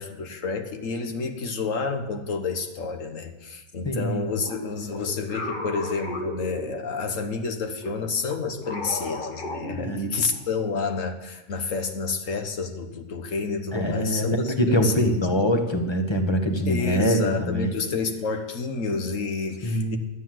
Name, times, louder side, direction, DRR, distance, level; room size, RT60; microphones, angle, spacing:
voice 1, 0.0-15.3 16.7-20.0, left 4 dB, 75° left, 6 dB, 1.5 m, -29 dB
voice 2, 3.8-4.2 9.7-10.1 13.7-17.7 19.6-20.0, equal, 20° left, 5 dB, 1.3 m, -24 dB
sound 1, 4.4-7.2 7.8-10.5, left 2 dB, 40° left, 1.8 m, -35 dB
12.0 x 8.4 x 7.6 m, 1.0 s
omnidirectional pair, 1.4 m